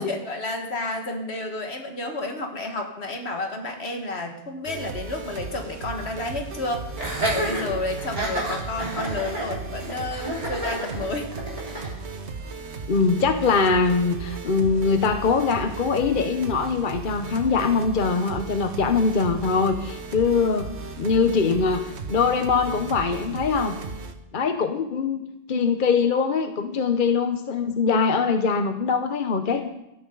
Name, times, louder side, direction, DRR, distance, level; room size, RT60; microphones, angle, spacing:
voice 1, 0.0-6.9 7.3-11.3 25.5-25.8, left 2 dB, 75° left, 3 dB, 2.0 m, -31 dB
sound 1, 4.6-24.1, right 4 dB, 85° right, 1.4 m, -36 dB
Laughter, 7.0-11.9, right 1 dB, 35° right, 3.6 m, -29 dB
voice 2, 12.9-20.7 21.0-21.8 22.1-23.8 24.3-29.7, left 5 dB, 50° left, 7 dB, 1.0 m, -22 dB
17.0 x 13.0 x 3.9 m, 0.86 s
omnidirectional pair, 1.1 m